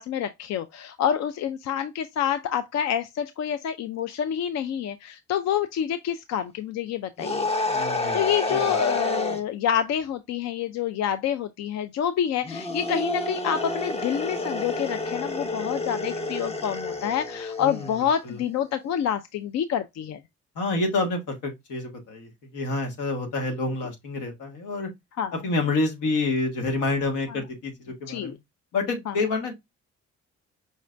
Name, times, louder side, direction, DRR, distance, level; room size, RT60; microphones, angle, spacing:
voice 1, 0.0-7.5 8.1-20.2 25.2-25.3 27.3-27.4 28.1-28.3 29.1-29.2, left 9 dB, 60° left, 0.5 m, -27 dB
sound 1, 7.2-9.4 12.4-18.0, left 2 dB, 20° left, 0.7 m, -29 dB
voice 2, 7.7-8.8 17.6-17.9 18.2-18.4 20.5-24.9 25.4-28.4 28.7-29.5, left 3 dB, 85° left, 1.5 m, -28 dB
5.3 x 2.5 x 3.1 m
cardioid pair, 90°, 30 cm